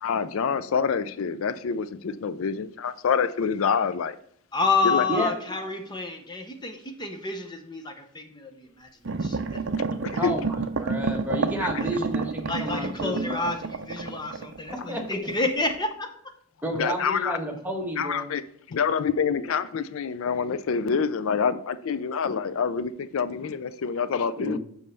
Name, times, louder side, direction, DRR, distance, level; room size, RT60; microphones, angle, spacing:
voice 1, 0.0-4.2 4.8-5.1 10.0-10.3 16.7-17.4 18.0-18.4 18.7-24.6, left 6 dB, 65° left, 14 dB, 0.4 m, -26 dB
voice 2, 4.5-8.9 9.2-9.4 12.5-13.6 13.9-16.1, left 3 dB, 20° left, 5 dB, 0.8 m, -29 dB
sound 1, 9.0-15.4 15.7-15.8, right 4 dB, 55° right, 0.5 m, -30 dB
voice 3, 10.1-13.5 14.9-15.3 16.6-18.3 24.4-24.6, equal, 10° right, 0 dB, 1.4 m, -31 dB
6.3 x 5.4 x 6.7 m, 0.68 s
head